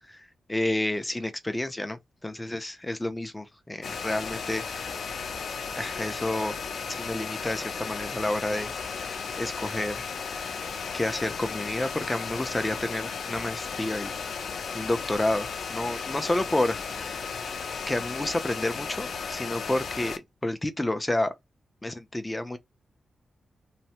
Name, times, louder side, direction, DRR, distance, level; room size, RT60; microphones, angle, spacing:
voice 1, 0.1-4.6 5.8-6.6 7.0-8.7 9.0-10.1 10.9-14.1 14.7-17.2 17.9-20.1 20.4-21.3 21.8-22.6, left 1 dB, 10° left, 0.4 m, -30 dB
sound 1, 3.8-20.2, left 5 dB, 70° left, 0.5 m, -35 dB
3.2 x 2.0 x 2.7 m
wide cardioid pair, 150°, 0 cm